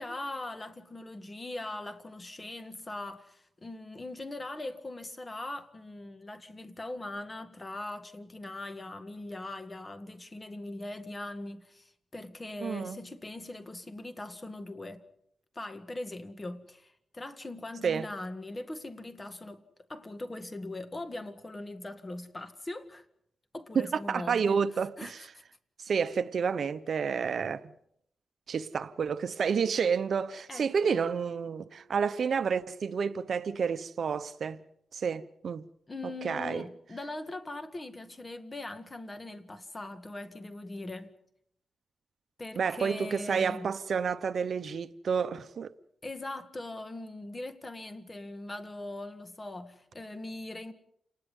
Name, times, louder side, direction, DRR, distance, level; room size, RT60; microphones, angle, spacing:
voice 1, 0.0-15.0 15.6-23.1 23.5-24.6 25.0-25.1 30.5-30.9 35.9-41.2 42.4-43.7 46.0-50.7, left 2 dB, 25° left, 1.7 m, -41 dB
voice 2, 12.6-13.0 17.8-18.1 23.7-25.3 25.8-27.7 28.5-34.6 34.9-35.6 36.2-36.6 42.6-45.7, right 6 dB, 60° right, 0.8 m, -30 dB
Harp, 30.8-32.6 33.0-33.4 33.9-34.0, right 3 dB, 5° left, 4.1 m, -54 dB
29.0 x 19.5 x 5.5 m
wide cardioid pair, 110°, 0 cm